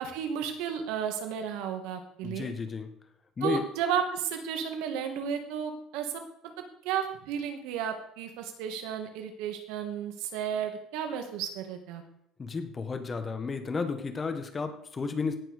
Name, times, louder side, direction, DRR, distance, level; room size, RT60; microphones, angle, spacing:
voice 1, 0.0-2.5 3.4-6.2 6.8-12.0, right 8 dB, 80° right, 6 dB, 2.3 m, -33 dB
voice 2, 2.2-2.9 3.4-3.6 12.4-15.4, left 4 dB, 20° left, 7 dB, 1.6 m, -32 dB
17.5 x 6.1 x 6.8 m, 0.71 s
cardioid pair, 145°, 0 cm